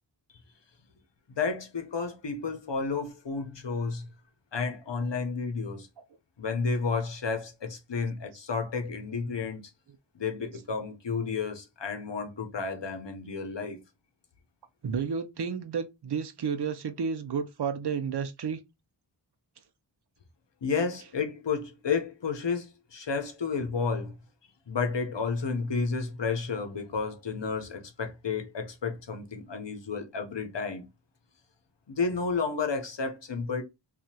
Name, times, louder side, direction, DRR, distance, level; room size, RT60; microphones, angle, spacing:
voice 1, 1.3-4.1 4.5-5.9 6.4-9.6 10.1-13.8 20.6-24.1 24.7-30.9 31.9-33.6, left 5 dB, 65° left, 0.8 m, -31 dB
voice 2, 14.8-18.6, right 6 dB, 60° right, 0.6 m, -31 dB
2.8 x 2.4 x 2.7 m
wide cardioid pair, 40°, 46 cm